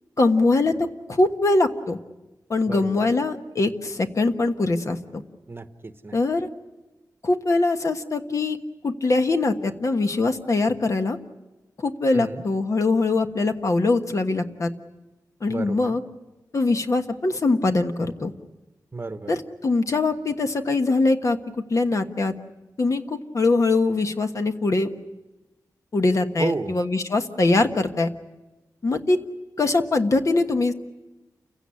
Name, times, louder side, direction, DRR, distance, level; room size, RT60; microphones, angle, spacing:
voice 1, 0.2-2.0 2.5-5.2 6.1-6.5 7.2-8.6 8.8-11.2 11.8-14.7 15.4-16.0 16.5-18.3 19.3-21.4 21.7-22.3 22.8-24.9 25.9-28.1 28.8-29.2 29.6-30.7, left 3 dB, 50° left, 6 dB, 1.3 m, -22 dB
voice 2, 2.6-3.1 5.5-6.2 12.1-12.4 15.5-16.0 18.9-19.3 26.4-26.7, right 3 dB, 30° right, 11 dB, 1.0 m, -32 dB
29.0 x 16.0 x 9.8 m, 1.1 s
wide cardioid pair, 120°, 7 cm